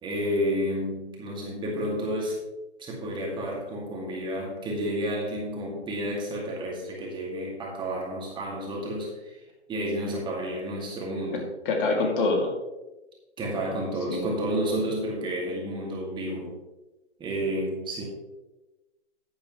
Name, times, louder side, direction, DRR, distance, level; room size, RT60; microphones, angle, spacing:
voice 1, 0.0-2.4 2.8-9.4 9.7-11.5 13.4-16.5 17.2-18.0, equal, 15° right, -2 dB, 2.2 m, -30 dB
voice 2, 11.3-12.5 14.1-14.3, left 3 dB, 50° left, 1 dB, 2.4 m, -26 dB
12.5 x 8.6 x 3.1 m, 1.1 s
hypercardioid pair, 135°, 34 cm